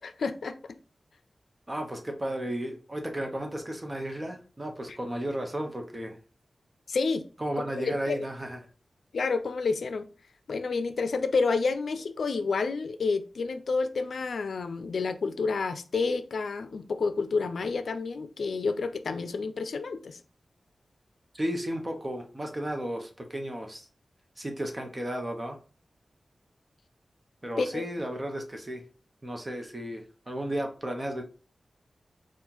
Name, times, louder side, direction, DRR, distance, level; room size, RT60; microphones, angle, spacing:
voice 1, 0.0-0.8 4.9-5.0 6.9-7.3 7.8-8.2 9.1-10.1 10.5-20.2 27.6-27.8, left 4 dB, 85° left, 0.4 m, -29 dB
voice 2, 1.7-6.2 7.4-8.6 21.3-23.8 24.4-25.6 27.4-28.8 29.2-31.2, right 1 dB, 25° right, 0.9 m, -34 dB
4.3 x 2.4 x 3.8 m
wide cardioid pair, 85°, 0 cm